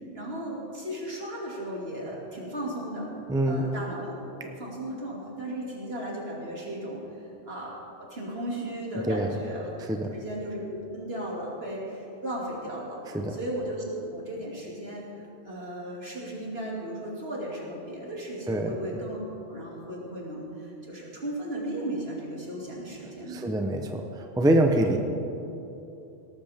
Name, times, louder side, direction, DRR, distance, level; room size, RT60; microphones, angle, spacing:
voice 1, 0.1-3.1 3.4-7.7 8.0-9.7 10.1-10.6 10.9-13.0 13.3-19.2 19.5-23.5, right 1 dB, 65° right, -4 dB, 2.9 m, -36 dB
voice 2, 3.3-3.7 9.1-9.3 9.8-10.1 13.1-13.4 18.5-18.8 23.3-25.0, right 1 dB, 5° right, 3 dB, 0.7 m, -25 dB
18.5 x 13.0 x 3.6 m, 2.8 s
omnidirectional pair, 1.1 m